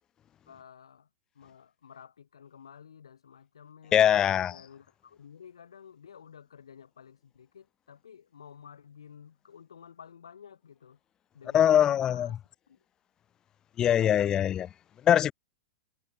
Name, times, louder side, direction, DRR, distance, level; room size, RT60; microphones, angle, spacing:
voice 1, 0.4-1.1 1.3-11.0 11.3-12.8, left 7 dB, 85° left, 6.8 m, -52 dB
voice 2, 3.9-4.5 11.5-12.3 13.8-14.7 15.1-15.3, left 10 dB, 25° left, 0.4 m, -22 dB
hypercardioid pair, 120°, 3 cm